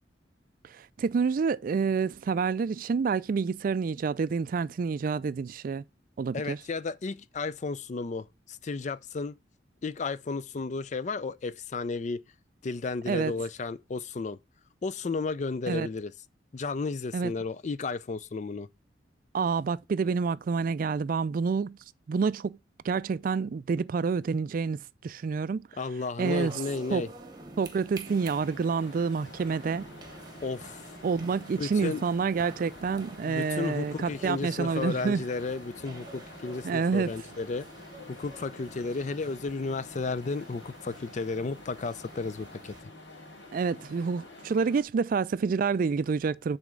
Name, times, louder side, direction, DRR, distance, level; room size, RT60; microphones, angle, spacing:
voice 1, 0.7-5.8 6.2-6.6 13.1-13.3 15.7-15.9 17.1-17.3 19.3-21.8 22.1-22.6 22.8-25.7 26.2-26.5 26.9-27.1 27.6-29.9 31.0-35.2 36.6-37.1 43.5-46.6, right 5 dB, 50° right, 0.3 m, -28 dB
voice 2, 6.3-9.3 9.8-12.2 12.6-14.4 14.8-16.1 16.5-18.7 25.8-27.1 30.4-30.8 31.6-32.0 33.2-37.7 38.1-42.7, left 4 dB, 40° left, 0.4 m, -33 dB
sound 1, 26.2-42.8, right 2 dB, 25° right, 1.5 m, -49 dB
sound 2, 28.0-44.8, left 2 dB, 85° left, 2.5 m, -48 dB
9.4 x 4.2 x 3.7 m
head